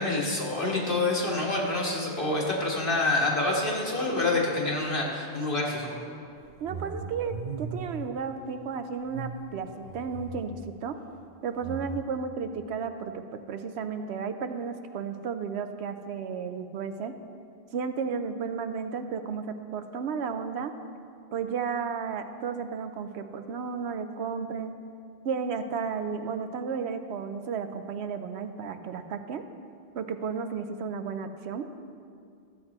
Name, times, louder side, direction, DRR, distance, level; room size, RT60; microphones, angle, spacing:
voice 1, 0.0-6.0, left 2 dB, 55° left, -3 dB, 2.0 m, -27 dB
sound 1, 6.3-8.1 9.0-10.7 11.6-12.0, right 4 dB, 50° right, 0.6 m, -38 dB
voice 2, 6.6-9.7 9.9-11.0 11.4-17.1 17.7-20.7 21.3-24.7 25.2-29.4 29.9-31.7, right 6 dB, 80° right, 8 dB, 0.9 m, -33 dB
13.0 x 7.9 x 4.3 m, 2.4 s
omnidirectional pair, 1.1 m